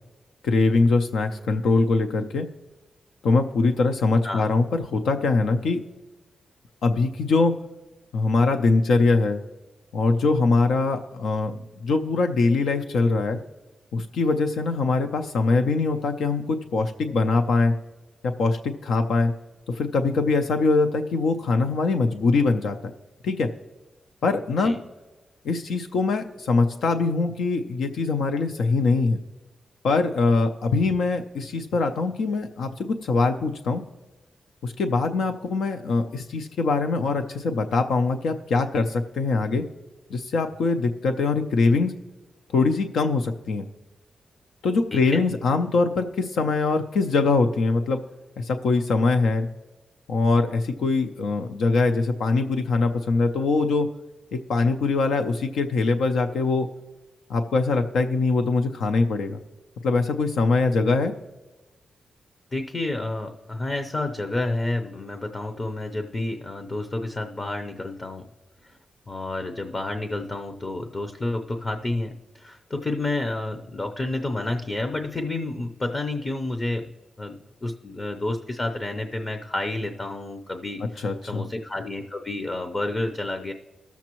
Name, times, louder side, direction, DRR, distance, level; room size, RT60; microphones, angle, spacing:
voice 1, 0.4-2.5 3.2-5.8 6.8-7.5 8.1-9.4 9.9-11.5 11.8-13.4 13.9-17.7 18.2-19.3 19.7-22.7 23.2-23.5 24.2-24.7 25.4-29.2 29.8-33.8 34.6-39.6 40.1-41.9 42.5-43.6 44.6-48.0 48.4-49.5 50.1-53.9 54.3-56.7 57.3-59.4 59.8-61.1 81.0-81.4, left 3 dB, 90° left, 6 dB, 0.5 m, -22 dB
voice 2, 44.9-45.2 62.5-68.2 68.6-68.8 69.1-76.9 77.2-83.5, left 2 dB, 30° left, 6 dB, 0.6 m, -30 dB
18.5 x 7.1 x 3.0 m, 1.1 s
cardioid pair, 110°, 0 cm